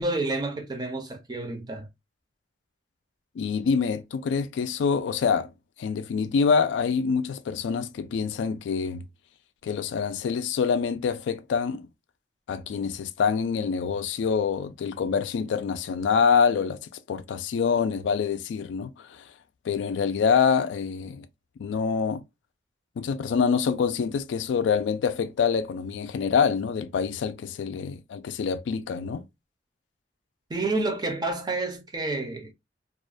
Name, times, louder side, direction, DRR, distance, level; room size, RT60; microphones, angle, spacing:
voice 1, 0.0-1.9 30.5-32.5, right 2 dB, 25° right, 0.5 m, -29 dB
voice 2, 3.4-5.5 5.8-9.0 9.6-11.9 12.5-16.8 17.1-19.2 19.6-21.3 21.6-22.2 23.0-29.2, left 6 dB, 80° left, 0.3 m, -26 dB
2.4 x 2.2 x 2.4 m
head